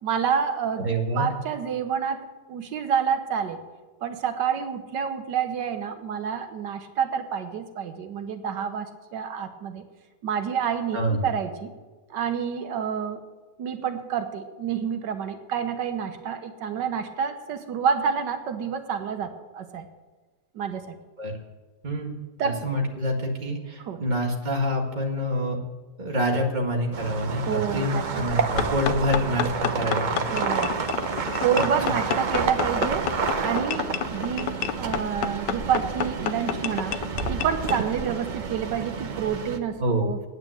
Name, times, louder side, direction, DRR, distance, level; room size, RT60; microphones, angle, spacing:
voice 1, 0.0-3.6 4.0-9.8 10.2-11.7 12.1-13.2 13.6-19.9 20.5-21.0 22.4-22.6 23.8-24.0 27.5-28.2 30.3-30.8 31.4-33.1 33.4-37.0 37.3-40.3, right 7 dB, 85° right, 7 dB, 1.6 m, -28 dB
voice 2, 0.8-1.3 10.9-11.3 21.2-21.3 21.8-22.1 22.4-25.6 26.0-30.4 31.9-32.0 39.8-40.1, equal, 25° right, 0 dB, 1.9 m, -26 dB
sound 1, 26.9-39.6, right 5 dB, 50° right, 0.5 m, -29 dB
sound 2, 28.6-37.8, left 10 dB, 85° left, 1.3 m, -30 dB
9.5 x 9.1 x 7.8 m, 1.3 s
omnidirectional pair, 1.8 m